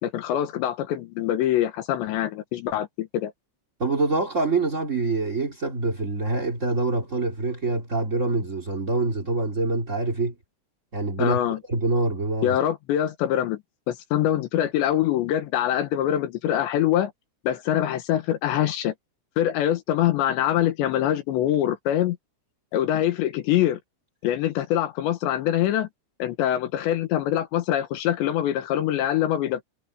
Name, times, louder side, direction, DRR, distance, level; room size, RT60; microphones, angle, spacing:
voice 1, 0.0-3.3 11.2-11.6 12.4-13.6 13.9-17.1 17.4-18.9 19.4-22.2 22.7-23.8 24.2-25.9 26.2-29.7, left 11 dB, 70° left, 3.2 m, -24 dB
voice 2, 3.8-10.3 10.9-11.4 11.7-12.6, right 3 dB, 35° right, 1.2 m, -25 dB
omnidirectional pair, 5.8 m